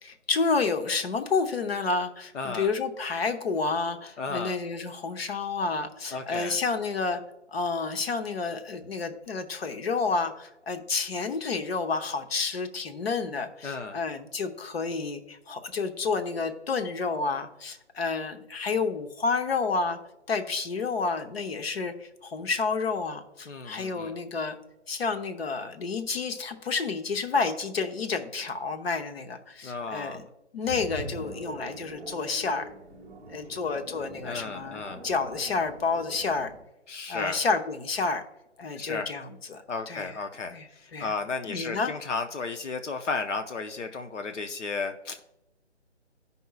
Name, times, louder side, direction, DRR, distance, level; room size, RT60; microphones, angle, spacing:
voice 1, 0.0-7.2 7.5-20.0 20.3-24.6 24.9-30.2 30.5-32.6 33.3-36.5 37.1-38.2 38.6-40.1 40.5-41.1 41.5-41.9, left 4 dB, 55° left, 7 dB, 1.0 m, -30 dB
voice 2, 2.3-2.7 4.2-4.5 6.1-6.6 13.6-14.0 23.5-24.1 29.6-30.2 34.2-35.0 36.9-37.4 38.8-39.1 39.7-45.2, left 4 dB, 85° left, 6 dB, 0.8 m, -34 dB
sound 1, 30.6-36.6, right 2 dB, 10° right, 0.7 m, -43 dB
14.5 x 5.4 x 2.3 m, 0.87 s
figure-of-eight pair, 160°, 35 cm